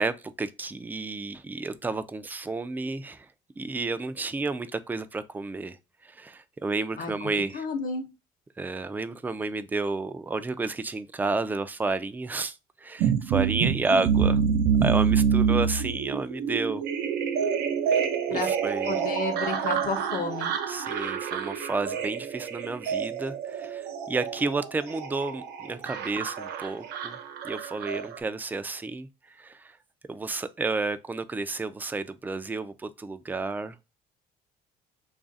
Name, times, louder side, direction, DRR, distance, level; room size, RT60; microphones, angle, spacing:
voice 1, 0.0-3.3 3.6-5.8 6.0-7.7 8.6-14.4 14.8-16.8 18.3-19.0 20.7-27.2 27.4-29.8 30.1-33.8, right 3 dB, 10° right, 0.3 m, -31 dB
voice 2, 7.0-8.1 18.3-18.5 18.9-20.6, left 4 dB, 55° left, 0.8 m, -32 dB
sound 1, 13.0-28.2, right 7 dB, 85° right, 0.6 m, -27 dB
3.1 x 2.5 x 3.9 m
cardioid pair, 110°, 17 cm